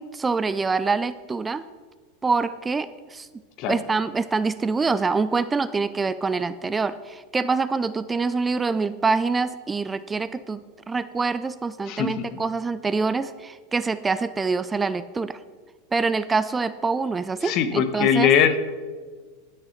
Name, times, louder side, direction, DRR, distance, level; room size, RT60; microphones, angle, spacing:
voice 1, 0.0-1.7 2.2-3.3 3.7-10.6 10.9-15.4 15.9-18.3, right 4 dB, 15° right, 14 dB, 0.4 m, -25 dB
voice 2, 11.9-12.3 17.4-18.7, left 8 dB, 50° left, 11 dB, 1.1 m, -21 dB
12.0 x 6.6 x 5.8 m, 1.5 s
hypercardioid pair, 105°, 0 cm